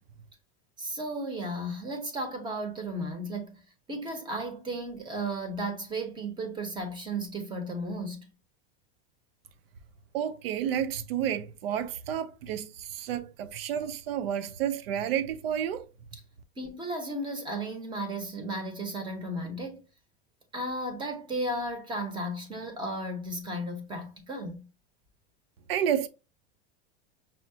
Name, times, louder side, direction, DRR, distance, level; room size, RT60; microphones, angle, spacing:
voice 1, 0.8-3.6 3.9-8.2 16.6-19.8 20.5-24.6, right 1 dB, 15° right, 0.6 m, -34 dB
voice 2, 10.1-15.9 25.7-26.1, right 9 dB, 90° right, 0.6 m, -30 dB
5.6 x 2.0 x 2.6 m
supercardioid pair, 150°, 29 cm